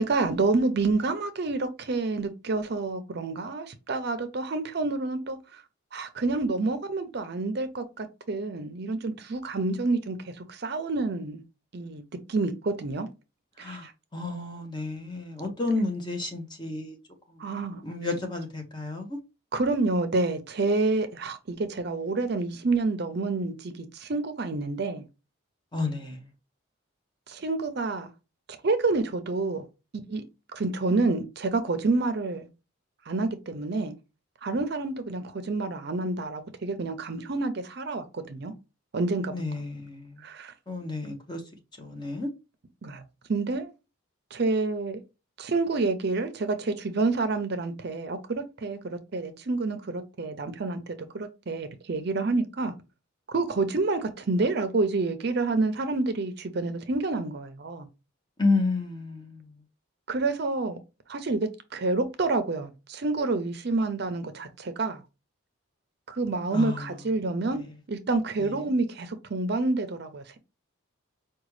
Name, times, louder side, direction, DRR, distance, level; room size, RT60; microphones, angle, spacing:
voice 1, 0.0-5.6 5.9-11.4 11.7-12.0 12.3-13.1 13.6-13.9 17.4-17.8 19.5-25.0 27.3-28.1 28.5-29.6 30.1-30.2 30.5-32.5 33.1-33.9 34.4-38.5 38.9-39.3 40.2-40.5 42.8-43.0 43.3-43.7 44.3-45.0 45.4-52.7 53.3-57.9 60.1-60.8 61.1-65.0 66.1-67.6 67.9-70.4, right 3 dB, 50° right, 0.5 m, -28 dB
voice 2, 13.6-17.0 17.3-17.4 17.8-19.2 25.7-26.2 39.3-40.2 40.7-41.4 41.8-42.3 58.4-59.5 66.5-66.8 68.4-68.5, left 3 dB, 20° left, 0.8 m, -31 dB
4.8 x 2.3 x 3.1 m
head